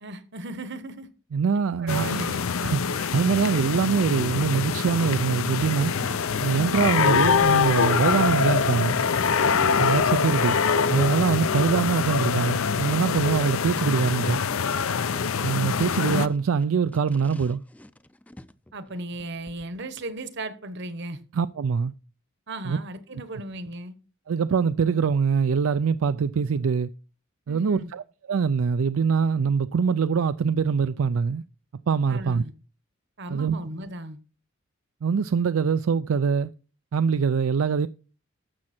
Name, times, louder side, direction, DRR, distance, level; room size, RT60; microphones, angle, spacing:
voice 1, 0.0-1.1 1.8-2.4 9.5-9.9 13.2-13.4 18.7-21.2 22.5-24.0 27.5-27.9 32.1-32.5 33.2-34.2, right 2 dB, 55° right, 1.2 m, -36 dB
voice 2, 1.3-2.3 2.6-5.9 6.4-9.0 9.8-10.6 10.9-14.4 15.4-17.6 21.3-21.9 22.6-22.8 24.3-26.9 27.5-31.4 31.9-32.4 33.3-33.6 35.0-36.5 36.9-37.9, right 6 dB, 80° right, 0.4 m, -23 dB
sound 1, 1.9-16.3, left 6 dB, 80° left, 0.6 m, -24 dB
sound 2, 5.9-10.3 10.8-11.6 11.9-12.0 12.2-19.6, left 1 dB, 5° left, 0.4 m, -41 dB
12.5 x 7.5 x 4.3 m
head